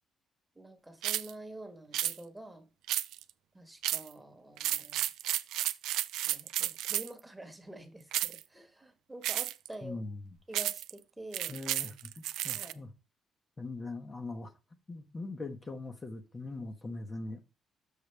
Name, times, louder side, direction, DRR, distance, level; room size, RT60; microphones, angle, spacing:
voice 1, 0.5-2.7 3.5-5.0 6.2-10.0 10.5-11.6 12.5-12.8, right 1 dB, 10° right, 1.3 m, -48 dB
sound 1, 1.0-1.3 1.9-2.2 2.9-3.3 3.8-4.1 4.6-7.2 8.1-8.4 9.2-9.7 10.5-10.9 11.3-12.7, right 13 dB, 90° right, 0.3 m, -32 dB
voice 2, 9.8-10.4 11.5-12.9 13.6-14.5 14.9-17.4, left 2 dB, 30° left, 1.1 m, -41 dB
6.7 x 6.2 x 3.4 m
cardioid pair, 90°, 0 cm